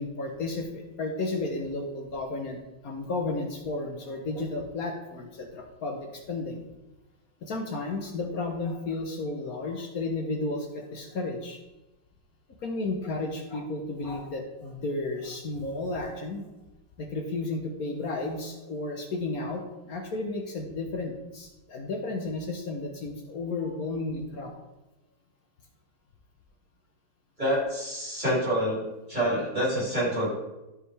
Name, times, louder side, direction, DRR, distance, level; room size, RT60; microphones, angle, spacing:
voice 1, 0.0-6.6 7.4-11.6 12.6-16.4 17.0-24.5, left 2 dB, 55° left, 3 dB, 1.2 m, -33 dB
voice 2, 27.4-28.8 29.1-30.3, equal, 20° right, -7 dB, 3.5 m, -27 dB
13.0 x 5.0 x 3.3 m, 1.0 s
omnidirectional pair, 2.2 m